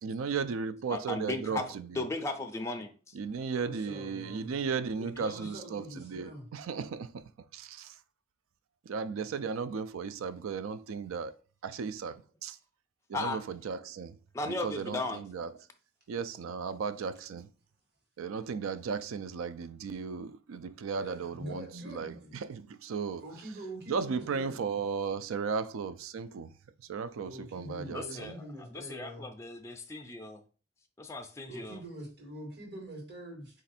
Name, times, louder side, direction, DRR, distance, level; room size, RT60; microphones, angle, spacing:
voice 1, 0.0-1.9 3.2-7.2 7.5-7.9 8.9-11.3 11.6-12.6 13.1-14.1 14.5-15.5 16.1-17.5 18.2-22.1 22.4-23.2 23.9-26.5 26.9-28.3, right 5 dB, 80° right, 0.4 m, -35 dB
voice 2, 0.9-3.1 5.2-5.3 13.1-13.4 14.3-15.3 27.9-30.4 31.0-31.8, left 2 dB, 15° left, 0.4 m, -37 dB
voice 3, 3.5-4.7 4.9-6.5 20.9-22.3 23.2-24.6 27.1-29.3 31.5-33.6, right 1 dB, 55° right, 1.3 m, -45 dB
4.2 x 2.5 x 4.1 m
head